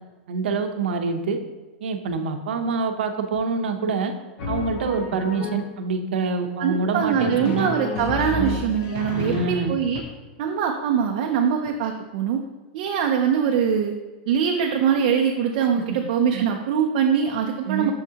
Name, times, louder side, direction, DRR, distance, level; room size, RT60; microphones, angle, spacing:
voice 1, 0.3-1.4 1.8-4.1 4.5-7.7 8.4-8.6 9.1-9.7 15.7-15.8 16.3-16.4 17.7-17.9, right 4 dB, 85° right, 6 dB, 0.7 m, -26 dB
Drum, 4.4-5.9 6.9-10.0, left 4 dB, 40° left, 0.8 m, -31 dB
voice 2, 6.6-10.0 10.4-12.4 12.7-13.9 14.3-17.9, right 7 dB, 40° right, 2 dB, 0.5 m, -23 dB
6.4 x 6.2 x 2.8 m, 1.2 s
supercardioid pair, 175°, 6 cm